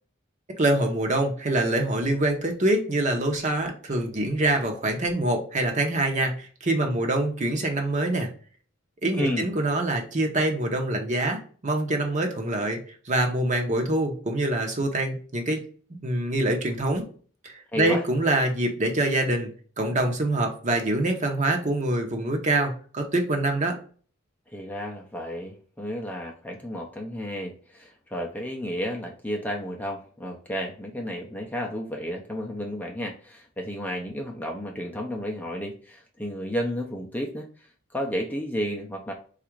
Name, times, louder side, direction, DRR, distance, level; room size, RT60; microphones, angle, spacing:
voice 1, 0.6-8.3 9.0-12.8 13.1-15.6 16.0-17.1 17.4-19.5 19.8-23.8, right 1 dB, 35° right, 3 dB, 0.8 m, -25 dB
voice 2, 9.1-9.5 17.7-18.0 24.5-39.1, equal, 10° left, 0 dB, 0.5 m, -32 dB
4.0 x 2.5 x 4.5 m, 0.43 s
head